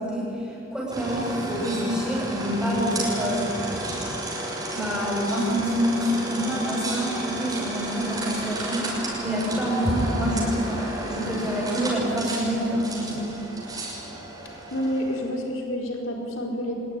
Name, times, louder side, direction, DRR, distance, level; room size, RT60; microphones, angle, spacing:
voice 1, 0.0-3.5 4.0-4.1 4.7-13.3, equal, 5° right, -6 dB, 7.9 m, -27 dB
sound 1, 0.9-15.3, right 1 dB, 20° right, 6.2 m, -32 dB
voice 2, 14.4-16.8, equal, 80° left, 0 dB, 4.7 m, -29 dB
25.5 x 20.5 x 10.0 m, 2.7 s
head